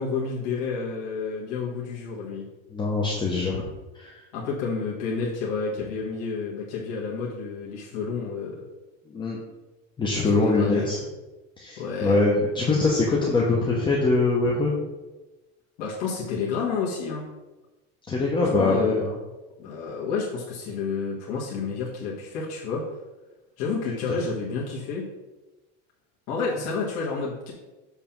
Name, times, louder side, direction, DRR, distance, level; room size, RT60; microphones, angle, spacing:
voice 1, 0.0-2.5 4.3-8.6 10.4-10.9 11.8-12.2 15.8-17.3 18.4-19.0 19.6-22.8 23.6-25.1 26.3-27.5, left 5 dB, 55° left, -5 dB, 1.6 m, -30 dB
voice 2, 2.7-3.6 3.9-4.2 9.1-9.4 10.0-11.0 11.6-14.7 18.1-19.1, left 3 dB, 15° left, -3 dB, 0.8 m, -23 dB
7.2 x 3.3 x 5.9 m, 1.1 s
cardioid pair, 165°, 30 cm